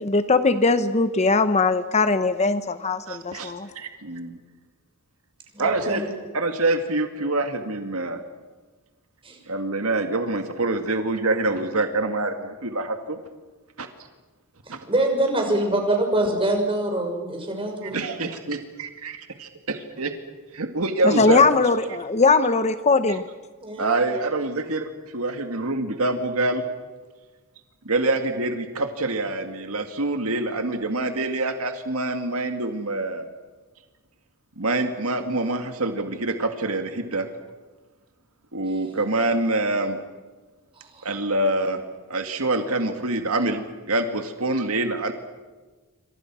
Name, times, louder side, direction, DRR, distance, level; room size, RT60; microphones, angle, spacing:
voice 1, 0.0-3.7 21.0-23.2, left 3 dB, 30° left, 11 dB, 0.9 m, -20 dB
voice 2, 3.1-4.4 5.6-8.2 9.5-13.2 13.8-13.9 14.7-14.8 17.9-19.1 19.7-20.1 20.5-21.4 23.1-23.2 23.8-26.6 27.8-33.3 34.6-37.3 38.5-40.0 41.0-41.8 42.1-45.1, right 2 dB, 70° right, 6 dB, 2.1 m, -25 dB
voice 3, 5.5-6.0 9.2-9.4 14.6-18.0 23.6-24.0 40.8-41.1, right 1 dB, 25° right, 3 dB, 6.2 m, -25 dB
28.0 x 25.5 x 6.2 m, 1.3 s
head